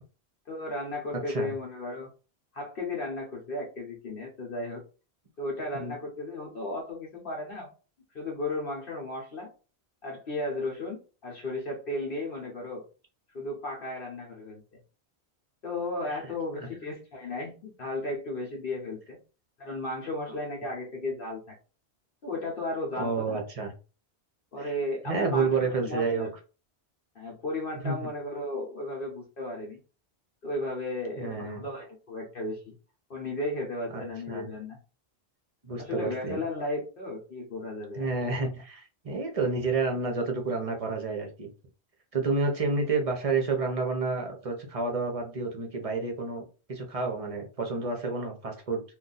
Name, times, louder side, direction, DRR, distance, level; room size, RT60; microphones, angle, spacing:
voice 1, 0.5-2.1 2.5-4.8 5.4-7.7 8.1-9.5 10.0-12.9 13.3-14.8 15.6-19.2 19.6-21.5 22.2-23.4 24.5-26.3 27.1-29.8 30.4-32.7 33.1-34.8 35.8-38.1, left 2 dB, 60° left, -1 dB, 1.0 m, -35 dB
voice 2, 23.0-23.7 24.6-24.7 25.1-26.3 27.8-28.0 31.2-31.6 33.9-34.5 35.6-36.4 37.9-41.5 42.1-46.4 46.7-48.8, right 3 dB, 35° right, 3 dB, 0.7 m, -30 dB
2.6 x 2.4 x 3.9 m, 0.34 s
omnidirectional pair, 1.1 m